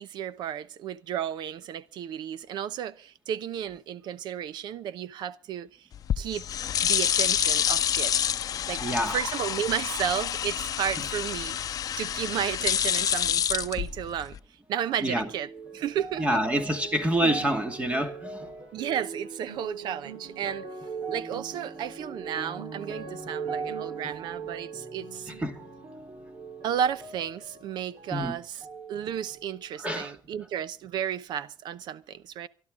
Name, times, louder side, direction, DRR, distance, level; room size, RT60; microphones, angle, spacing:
voice 1, 0.0-5.9 6.2-6.5 6.8-8.3 8.7-14.4 14.7-15.5 15.7-16.4 17.2-17.3 18.7-20.7 21.1-25.3 26.6-28.6 28.9-32.5, right 9 dB, 85° right, 0.8 m, -33 dB
sound 1, 5.9-14.4, left 9 dB, 55° left, 0.6 m, -28 dB
voice 2, 8.8-9.2 11.9-12.0 15.0-15.3 16.2-18.5 25.3-25.7 28.1-28.4 29.8-30.2, right 1 dB, 15° right, 2.3 m, -27 dB
sound 2, 14.8-28.3 28.6-29.6 30.2-30.3, right 4 dB, 60° right, 4.0 m, -40 dB
24.0 x 12.0 x 3.7 m
cardioid pair, 125°, 7 cm